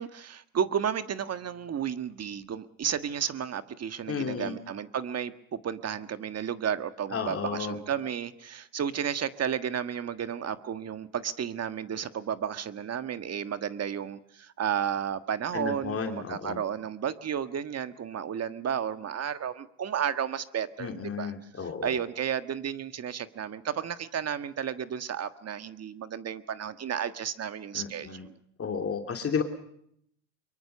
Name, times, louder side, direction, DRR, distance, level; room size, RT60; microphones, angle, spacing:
voice 1, 0.0-20.9 21.2-28.3, right 8 dB, 35° right, 11 dB, 1.6 m, -32 dB
voice 2, 4.1-4.5 7.1-7.8 15.5-16.6 20.8-21.9 27.7-28.3 28.6-29.4, left 6 dB, 30° left, 4 dB, 2.9 m, -32 dB
24.0 x 23.0 x 6.9 m, 0.70 s
hypercardioid pair, 85°, 42 cm